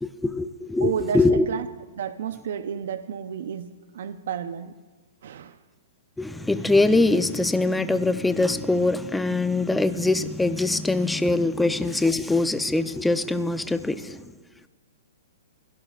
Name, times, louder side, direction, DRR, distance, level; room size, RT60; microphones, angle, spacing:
voice 1, 0.0-1.5 6.2-14.3, left 2 dB, 5° left, 0.7 m, -23 dB
voice 2, 0.8-1.7 2.0-4.7 5.2-5.6, right 8 dB, 70° right, 0.8 m, -31 dB
29.0 x 16.5 x 2.5 m
hypercardioid pair, 145°, 0 cm